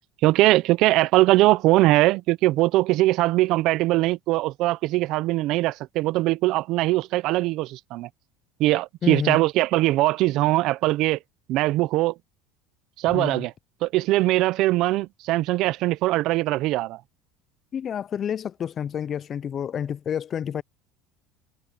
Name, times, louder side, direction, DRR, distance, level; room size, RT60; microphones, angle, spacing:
voice 1, 0.2-8.1 8.6-11.2 11.5-12.1 13.0-13.5 13.8-17.0, right 17 dB, 60° right, 0.8 m, -21 dB
voice 2, 9.0-9.4 13.1-13.5 17.7-20.6, left 8 dB, 35° left, 0.4 m, -29 dB
supercardioid pair, 115°, 0 cm